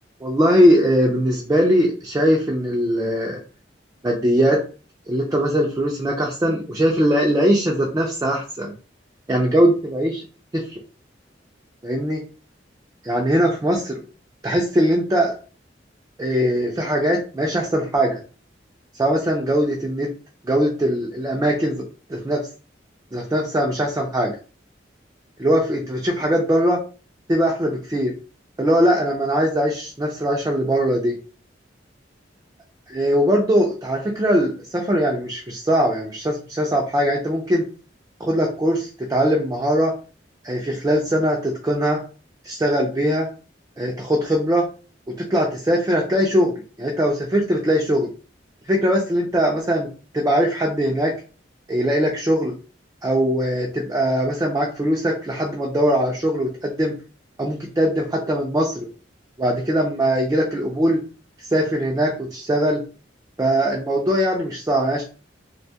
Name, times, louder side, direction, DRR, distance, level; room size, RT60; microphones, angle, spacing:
voice 1, 0.2-3.4 4.0-4.6 5.1-8.7 9.3-10.2 10.5-10.6 11.8-12.2 13.0-14.0 14.4-15.3 16.2-18.2 19.0-20.1 20.4-21.8 22.1-22.4 23.1-24.3 25.4-26.8 27.3-28.1 28.6-31.2 32.9-37.6 38.2-39.9 40.4-42.0 42.4-43.3 43.8-44.7 45.2-48.1 48.7-49.9 50.1-51.1 51.7-52.5 53.0-56.9 57.4-58.9 59.4-61.0 61.5-62.8 63.4-65.0, equal, 20° right, -1 dB, 0.4 m, -21 dB
2.6 x 2.2 x 2.7 m, 0.37 s
head